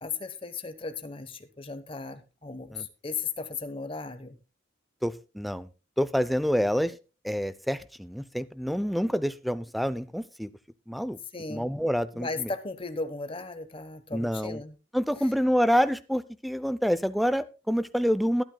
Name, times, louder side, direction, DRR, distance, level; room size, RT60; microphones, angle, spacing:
voice 1, 0.0-4.4 11.3-11.7 12.1-14.8, left 4 dB, 25° left, 9 dB, 1.1 m, -36 dB
voice 2, 5.0-5.7 6.0-7.0 7.2-10.5 10.9-11.2 11.5-12.5 14.1-14.6 14.9-18.4, equal, ahead, 15 dB, 0.5 m, -27 dB
21.0 x 9.2 x 2.3 m, 0.31 s
head